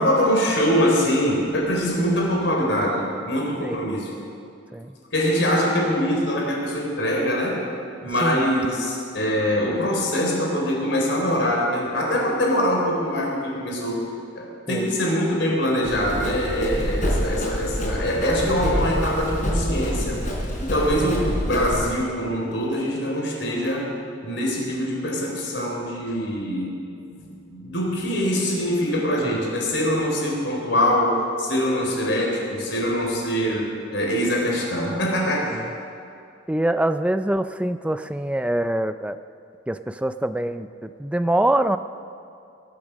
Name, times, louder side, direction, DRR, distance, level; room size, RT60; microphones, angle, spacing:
voice 1, 0.0-4.1 5.1-7.6 8.0-14.0 14.4-20.2 20.6-23.9 24.2-26.8 27.1-35.6, equal, 70° left, -1 dB, 4.0 m, -23 dB
Run, 15.8-21.9, equal, 40° left, 4.4 m, -27 dB
voice 2, 36.5-39.2 39.7-41.8, right 1 dB, 5° right, 11 dB, 0.4 m, -24 dB
22.5 x 8.7 x 6.3 m, 2.6 s
head